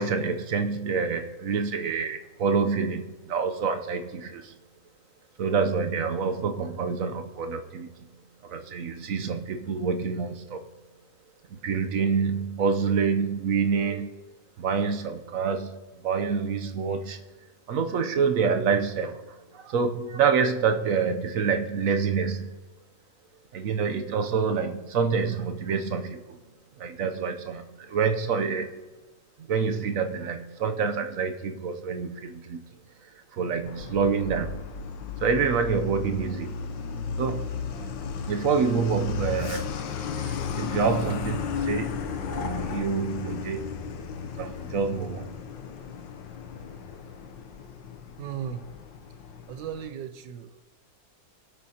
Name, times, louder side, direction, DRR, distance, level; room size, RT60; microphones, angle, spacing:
voice 1, 0.0-4.5 5.4-8.1 8.4-10.6 11.6-14.1 14.6-17.2 17.7-22.6 23.5-26.4 26.8-28.8 29.5-32.7 33.3-34.6 35.2-36.6 37.2-37.5 38.3-43.7 44.3-45.3, right 5 dB, 60° right, 7 dB, 1.0 m, -27 dB
Truck, 33.7-49.9, left 6 dB, 80° left, 1.5 m, -35 dB
voice 2, 48.2-48.6 49.5-50.6, right 9 dB, 75° right, 10 dB, 1.4 m, -36 dB
24.5 x 8.3 x 2.9 m, 1.2 s
omnidirectional pair, 2.0 m